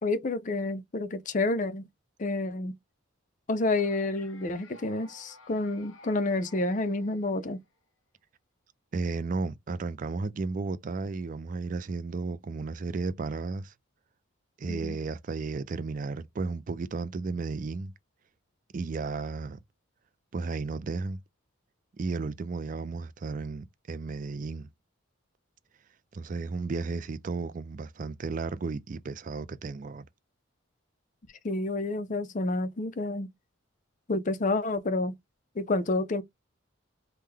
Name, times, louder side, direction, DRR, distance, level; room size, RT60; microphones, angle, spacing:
voice 1, 0.0-1.8 2.2-2.8 3.5-7.6 14.7-15.0 31.4-33.3 34.1-35.1 35.6-36.2, left 2 dB, 35° left, 0.5 m, -29 dB
sound 1, 3.6-7.8, left 3 dB, 70° left, 0.9 m, -54 dB
voice 2, 8.9-13.7 14.6-17.9 18.7-19.6 20.3-21.2 22.0-24.7 26.1-30.1, right 4 dB, 40° right, 0.3 m, -33 dB
3.5 x 2.1 x 3.2 m
head